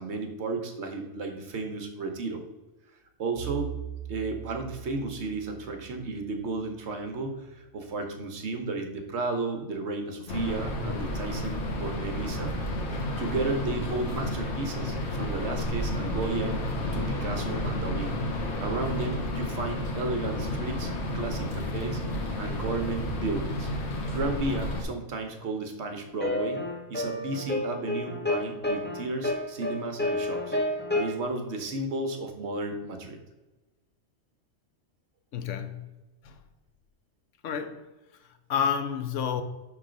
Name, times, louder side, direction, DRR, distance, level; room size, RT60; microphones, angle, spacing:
voice 1, 0.0-2.4 3.2-3.7 4.1-12.5 13.2-16.6 16.9-18.2 18.6-22.0 22.4-23.7 24.1-26.6 26.9-30.5 30.9-33.2, right 3 dB, 65° right, 1.1 m, -33 dB
Bowed string instrument, 3.3-7.5, right 12 dB, 45° right, 1.1 m, -42 dB
sound 1, 10.3-24.8, left 1 dB, 60° left, 1.2 m, -31 dB
sound 2, 26.2-31.1, left 1 dB, 10° left, 0.7 m, -30 dB
voice 2, 35.3-35.9 36.2-36.4 37.4-37.9 38.2-39.4, left 7 dB, 80° left, 1.0 m, -30 dB
5.9 x 3.3 x 5.0 m
omnidirectional pair, 1.3 m